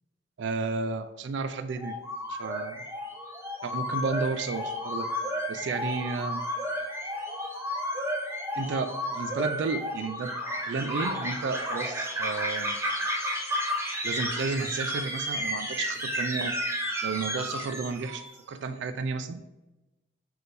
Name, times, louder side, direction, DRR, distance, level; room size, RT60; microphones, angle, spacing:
voice 1, 0.4-2.0 2.3-2.8 3.6-5.1 5.5-6.4 8.6-10.3 10.7-12.8 14.0-16.6 17.0-19.4, right 4 dB, 65° right, 10 dB, 0.3 m, -32 dB
sound 1, 1.8-18.3, equal, 15° right, 0.5 m, -32 dB
6.1 x 2.6 x 3.3 m, 1.0 s
head